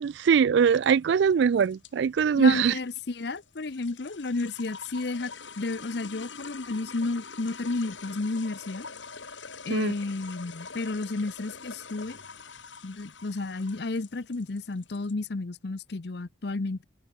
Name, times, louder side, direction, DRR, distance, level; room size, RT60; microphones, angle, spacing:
voice 1, 0.0-2.8 9.7-9.9, right 6 dB, 65° right, 0.3 m, -22 dB
sound 1, 0.6-15.1, left 5 dB, 75° left, 4.5 m, -45 dB
voice 2, 2.3-8.9 9.6-12.2 12.8-16.8, left 3 dB, 60° left, 0.7 m, -32 dB
head